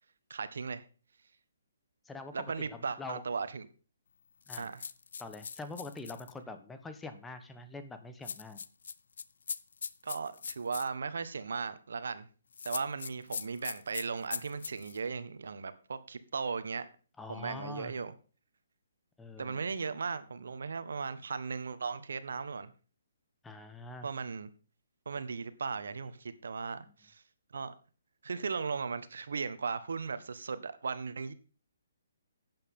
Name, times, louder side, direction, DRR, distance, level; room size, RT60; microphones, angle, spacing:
voice 1, 0.3-0.8 2.3-3.7 4.6-4.8 10.0-12.3 12.6-16.9 17.3-18.1 19.4-22.7 24.0-24.5 25.0-27.2 27.5-27.7 28.2-31.3, right 5 dB, 75° right, 1.4 m, -37 dB
voice 2, 2.0-3.2 4.5-4.7 5.2-8.6 17.2-17.9 19.2-19.7 23.4-24.1, left 3 dB, 5° left, 1.2 m, -44 dB
sound 1, 4.5-6.3 8.2-10.9 12.5-15.0, left 6 dB, 70° left, 0.7 m, -41 dB
11.5 x 9.1 x 3.7 m
hypercardioid pair, 155°, 0 cm